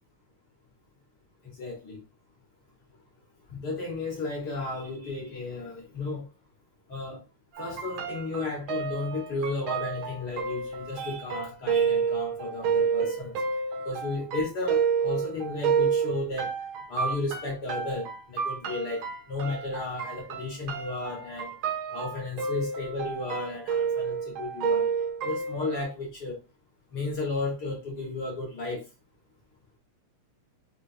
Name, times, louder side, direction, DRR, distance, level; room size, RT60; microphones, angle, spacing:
voice 1, 1.4-2.0 3.5-6.3 6.9-7.2 7.6-13.4 13.8-16.5 16.9-21.5 21.9-24.9 25.2-26.4 26.9-28.8, left 3 dB, 55° left, 1.2 m, -33 dB
sound 1, 7.5-25.8, right 6 dB, 85° right, 1.1 m, -30 dB
4.8 x 3.2 x 2.6 m
omnidirectional pair, 3.4 m